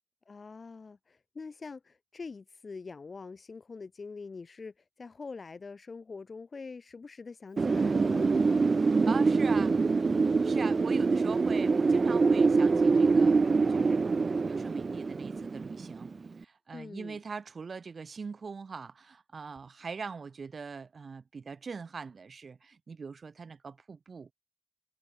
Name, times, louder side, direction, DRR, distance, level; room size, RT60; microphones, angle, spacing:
voice 1, 0.2-8.3 16.7-17.2, left 4 dB, 65° left, 1.4 m, -44 dB
Wind, 7.6-16.3, right 4 dB, 65° right, 0.9 m, -25 dB
voice 2, 9.1-9.8 10.4-14.0 14.3-24.3, right 5 dB, 80° right, 3.5 m, -42 dB
wide cardioid pair, 75°, 0 cm